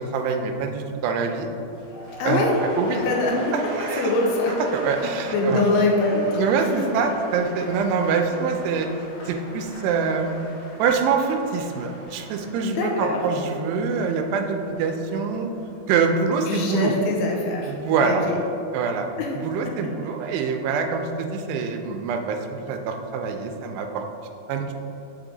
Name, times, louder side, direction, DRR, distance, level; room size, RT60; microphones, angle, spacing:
voice 1, 0.0-1.5 2.2-2.4 2.8-3.0 3.5-4.1 4.6-5.6 6.4-8.9 9.3-10.4 10.8-15.5 15.9-16.9 17.7-18.2 18.7-19.1 19.4-24.0 24.5-24.7, right 5 dB, 85° right, 5 dB, 2.6 m, -25 dB
sound 1, 1.6-17.7 18.0-18.4, left 1 dB, 60° left, 1.8 m, -41 dB
voice 2, 2.2-2.5 2.9-3.4 4.0-4.6 5.3-6.7 12.6-13.2 16.5-17.7 18.0-18.4 19.2-19.3, left 2 dB, 80° left, -1 dB, 2.5 m, -23 dB
6.1 x 4.8 x 3.8 m, 2.9 s
omnidirectional pair, 4.8 m